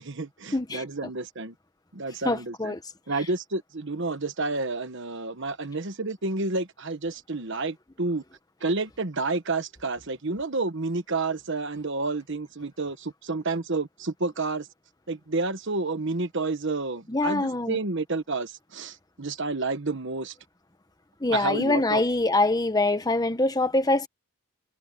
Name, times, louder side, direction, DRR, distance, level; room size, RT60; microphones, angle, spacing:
voice 1, 0.0-1.5 1.9-2.7 3.1-8.2 8.6-14.7 15.1-20.3 21.3-22.0, right 3 dB, 55° right, 1.2 m, -30 dB
voice 2, 0.5-0.8 2.2-2.8 17.1-17.8 21.2-24.1, left 2 dB, 15° left, 1.1 m, -24 dB
head